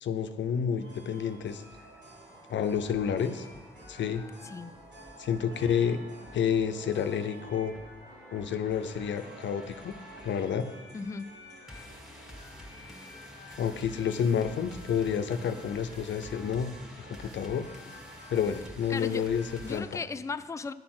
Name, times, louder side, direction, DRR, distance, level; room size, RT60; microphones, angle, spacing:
voice 1, 0.0-1.6 2.5-3.5 3.9-4.2 5.2-6.0 6.3-7.7 8.3-10.0 10.2-10.7 13.6-16.7 17.0-17.7 18.3-20.0, left 7 dB, 65° left, 9 dB, 0.6 m, -29 dB
sound 1, 0.8-20.0, equal, 60° right, 2.3 m, -51 dB
sound 2, 1.1-19.8, equal, ahead, 1.4 m, -50 dB
voice 2, 4.4-4.8 10.9-11.3 18.9-19.3 19.6-20.7, left 4 dB, 15° left, 13 dB, 0.3 m, -36 dB
10.5 x 4.2 x 5.9 m, 1.3 s
supercardioid pair, 50°, 20 cm